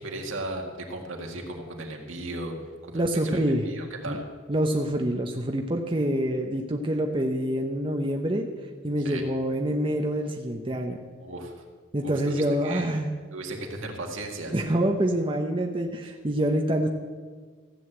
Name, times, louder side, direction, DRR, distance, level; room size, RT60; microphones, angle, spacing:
voice 1, 0.0-2.5 2.9-4.2 9.0-9.2 11.2-11.5 12.0-13.0 13.3-14.5, right 2 dB, 80° right, 2 dB, 1.9 m, -36 dB
voice 2, 2.9-3.6 4.1-4.2 4.5-8.5 8.8-11.0 11.9-13.1 14.5-16.9, right 1 dB, 25° right, 3 dB, 0.8 m, -26 dB
14.5 x 7.9 x 7.7 m, 1.5 s
head